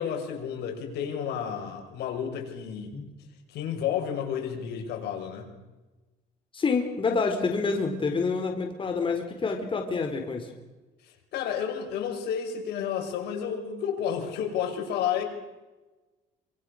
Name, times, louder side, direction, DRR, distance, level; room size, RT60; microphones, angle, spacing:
voice 1, 0.0-2.9 3.5-5.5 11.0-15.2, left 8 dB, 80° left, 4 dB, 5.9 m, -31 dB
voice 2, 6.5-10.5, left 4 dB, 30° left, 4 dB, 4.3 m, -27 dB
27.5 x 26.5 x 6.6 m, 1.2 s
cardioid pair, 110°, 17 cm